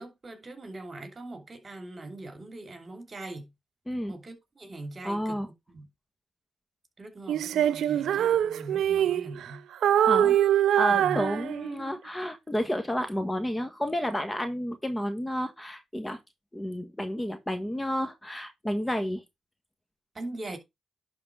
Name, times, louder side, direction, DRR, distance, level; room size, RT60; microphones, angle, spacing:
voice 1, 0.0-3.5 4.1-5.4 5.7-5.9 7.0-9.6 10.9-11.2 20.1-20.6, right 2 dB, 35° right, 2.7 m, -41 dB
voice 2, 5.0-5.5 10.1-10.4 10.8-16.2 16.5-19.2, equal, 10° left, 1.4 m, -31 dB
Female singing, 7.3-9.5 9.8-11.9, right 10 dB, 80° right, 0.4 m, -24 dB
11.0 x 4.0 x 4.7 m
cardioid pair, 65°, 0 cm